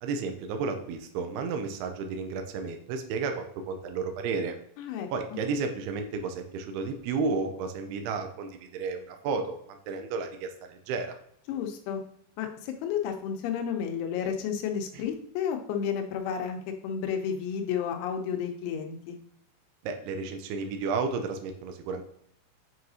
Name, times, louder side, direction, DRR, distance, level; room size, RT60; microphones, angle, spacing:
voice 1, 0.0-4.6 5.1-11.2 14.9-15.0 19.8-22.0, right 4 dB, 80° right, 5 dB, 2.4 m, -32 dB
voice 2, 4.8-5.1 11.5-12.0 12.4-19.2, left 8 dB, 90° left, 5 dB, 3.2 m, -31 dB
7.7 x 4.8 x 2.7 m, 0.68 s
omnidirectional pair, 5.3 m